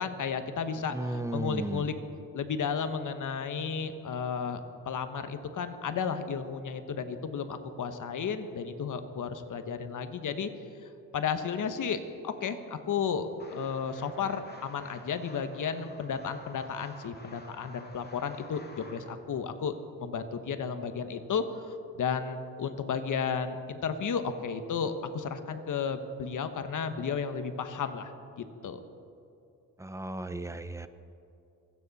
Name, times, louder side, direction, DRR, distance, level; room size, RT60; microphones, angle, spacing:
voice 1, 0.0-1.9 2.3-4.6 4.8-10.5 11.1-19.7 20.0-28.1 28.4-28.8, left 6 dB, 65° left, 9 dB, 1.2 m, -33 dB
voice 2, 0.9-1.9 29.8-30.9, right 1 dB, 10° right, 11 dB, 0.8 m, -35 dB
sound 1, 13.4-19.1, left 2 dB, 30° left, 2.2 m, -51 dB
27.5 x 9.6 x 4.2 m, 2.7 s
cardioid pair, 85°, 33 cm